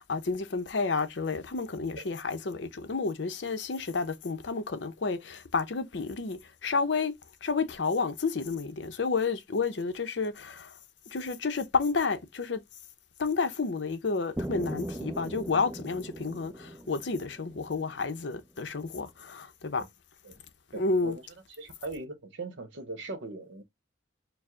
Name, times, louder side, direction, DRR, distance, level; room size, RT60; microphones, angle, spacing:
voice 1, 0.0-7.1 7.4-10.7 11.1-12.6 13.2-19.9 20.7-21.2, left 4 dB, 65° left, 0.6 m, -30 dB
sound 1, 14.4-18.3, right 1 dB, 10° right, 0.4 m, -39 dB
voice 2, 20.7-21.2 21.6-23.6, right 3 dB, 70° right, 0.8 m, -40 dB
4.6 x 2.0 x 3.6 m
head